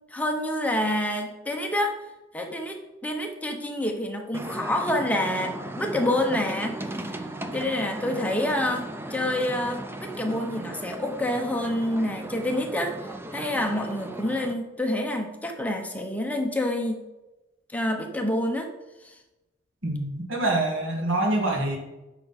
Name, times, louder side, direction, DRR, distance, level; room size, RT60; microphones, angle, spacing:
voice 1, 0.1-2.0 2.3-6.8 7.1-7.2 7.5-13.0 13.3-17.0 17.7-18.7 19.0-19.1, left 1 dB, 10° left, 3 dB, 0.8 m, -27 dB
sound 1, 4.3-14.5, right 1 dB, 10° right, 0.5 m, -36 dB
voice 2, 19.8-21.8, right 2 dB, 80° right, 0 dB, 2.0 m, -25 dB
9.8 x 5.8 x 4.2 m, 1.0 s
head